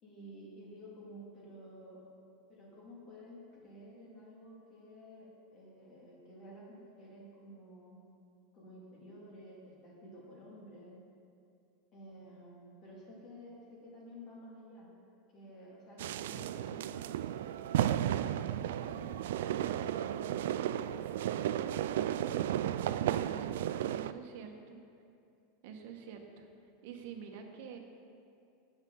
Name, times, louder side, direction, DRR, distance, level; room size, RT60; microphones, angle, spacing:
voice 1, 0.0-2.1 2.5-8.0 8.5-11.0 11.9-14.9 15.3-17.1, equal, 30° left, -5 dB, 2.5 m, -52 dB
sound 1, 16.0-24.1, right 11 dB, 80° right, 0.3 m, -33 dB
voice 2, 22.7-24.8 25.6-26.5 26.8-27.8, right 6 dB, 60° right, 3 dB, 1.4 m, -48 dB
17.0 x 7.1 x 4.0 m, 2.5 s
supercardioid pair, 165°, 0 cm